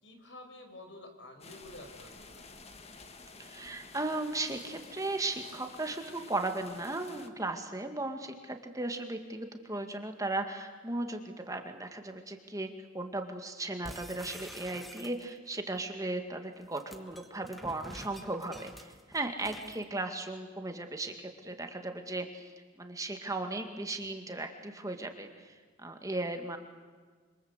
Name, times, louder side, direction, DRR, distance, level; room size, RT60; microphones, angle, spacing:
voice 1, 0.0-2.5, left 1 dB, 65° left, 5 dB, 5.3 m, -50 dB
sound 1, 1.4-7.3, left 3 dB, 30° left, 2.0 m, -51 dB
voice 2, 3.4-12.7 12.9-22.5 22.8-26.6, right 2 dB, 15° right, 5 dB, 2.0 m, -36 dB
sound 2, 13.8-15.5 16.5-19.8, equal, ahead, 1.4 m, -48 dB
27.0 x 26.5 x 8.1 m, 1.5 s
head